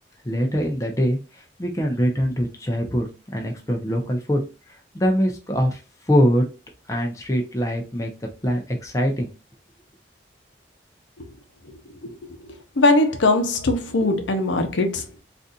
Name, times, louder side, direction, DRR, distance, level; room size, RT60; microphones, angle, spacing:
voice 1, 0.2-4.4 4.9-5.8 6.1-6.5 6.9-8.1 8.4-9.3, equal, 15° left, 0.6 m, -23 dB
voice 2, 12.8-15.2, left 2 dB, 85° left, 0.7 m, -20 dB
4.0 x 2.6 x 2.3 m
head